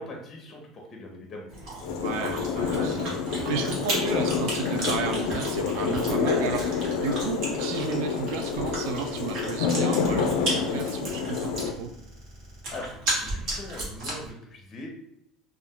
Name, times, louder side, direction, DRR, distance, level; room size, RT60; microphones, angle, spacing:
voice 1, 0.0-1.5 12.7-12.9 13.1-14.9, left 1 dB, 30° left, 1 dB, 0.5 m, -41 dB
Chewing mastication, 1.5-14.3, right 1 dB, 60° right, 1.0 m, -35 dB
sound 1, 1.8-11.7, left 6 dB, 85° left, 0.3 m, -28 dB
voice 2, 1.9-11.9, right 5 dB, 80° right, 4 dB, 0.3 m, -33 dB
2.3 x 2.1 x 3.5 m, 0.78 s
cardioid pair, 135°, 0 cm